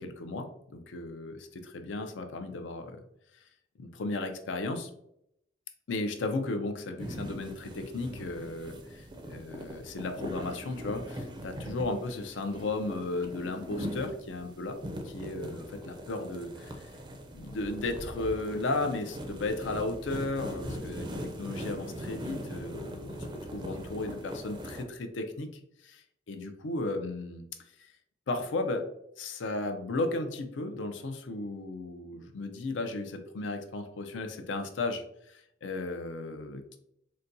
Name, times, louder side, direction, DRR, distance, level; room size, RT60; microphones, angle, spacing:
voice 1, 0.0-3.0 3.8-4.9 5.9-14.8 15.0-16.8 17.3-23.2 23.5-25.5 25.8-27.4 27.8-27.9 28.3-28.9 29.2-36.8, left 2 dB, 80° left, 6 dB, 0.5 m, -35 dB
sound 1, 7.0-24.8, equal, 25° right, 0.4 m, -41 dB
3.9 x 2.2 x 2.6 m, 0.76 s
head